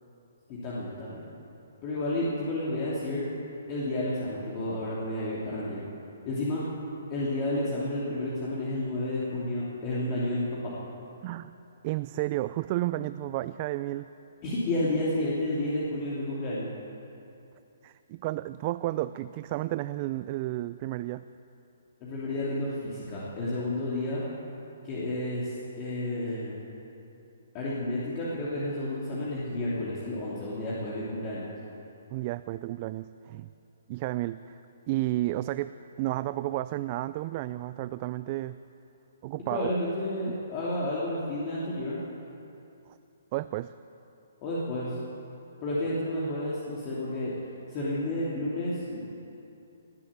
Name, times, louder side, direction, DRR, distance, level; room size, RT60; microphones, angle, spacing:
voice 1, 0.5-1.2 1.8-3.2 3.7-5.9 6.2-6.6 7.1-10.7 14.4-16.7 22.0-24.2 24.8-26.6 27.5-31.5 39.5-42.0 44.4-45.0 45.6-47.3 47.7-49.0, left 1 dB, 30° left, -8 dB, 2.9 m, -31 dB
voice 2, 11.8-14.1 17.8-21.3 32.1-33.5 33.9-34.6 34.9-38.6 39.2-39.7 43.3-43.7, right 16 dB, 35° right, 14 dB, 0.3 m, -32 dB
18.5 x 7.7 x 8.8 m, 2.8 s
hypercardioid pair, 145°, 0 cm